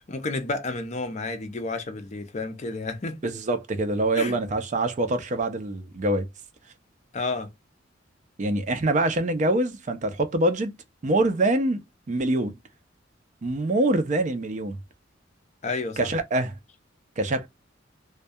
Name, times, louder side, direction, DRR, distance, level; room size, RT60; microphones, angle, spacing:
voice 1, 0.0-3.3 4.1-4.4 7.1-7.5 15.6-16.0, left 3 dB, 40° left, 0.5 m, -31 dB
voice 2, 3.2-6.3 8.4-10.7 11.0-11.8 12.1-12.5 13.4-14.8 16.0-16.5 17.2-17.5, right 2 dB, 40° right, 0.4 m, -24 dB
2.2 x 2.2 x 2.6 m
head